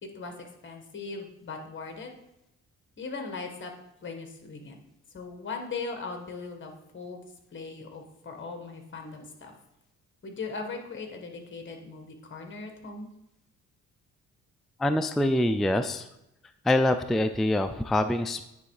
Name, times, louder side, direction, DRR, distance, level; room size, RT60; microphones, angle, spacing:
voice 1, 0.0-2.1 3.0-3.7 4.0-4.8 5.1-7.2 7.5-9.5 10.2-13.1, left 4 dB, 40° left, 4 dB, 1.6 m, -39 dB
voice 2, 14.8-16.1 16.6-18.5, left 1 dB, ahead, 9 dB, 0.3 m, -25 dB
9.5 x 3.3 x 4.8 m, 0.87 s
cardioid pair, 90°, 30 cm